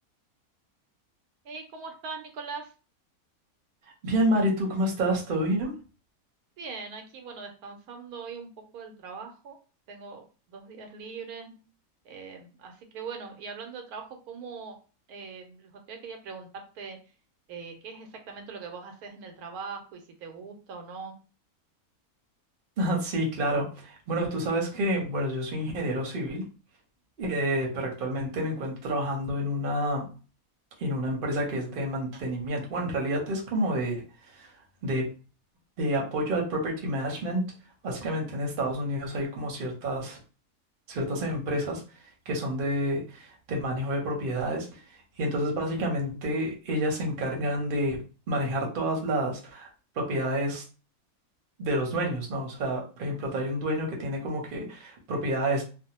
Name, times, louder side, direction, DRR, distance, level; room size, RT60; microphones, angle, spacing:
voice 1, 1.4-2.7 6.6-9.6 9.9-11.5 12.0-14.8 15.1-17.0 17.5-21.2, right 5 dB, 90° right, 4 dB, 1.1 m, -41 dB
voice 2, 4.0-5.8 22.8-26.4 27.2-30.1 30.8-34.0 34.3-34.5 34.8-35.1 35.8-37.4 37.8-40.2 40.9-41.8 42.3-44.7 45.2-49.7 50.0-50.6 51.6-55.6, right 1 dB, 45° right, 0 dB, 0.8 m, -29 dB
2.6 x 2.0 x 2.8 m, 0.35 s
omnidirectional pair, 1.5 m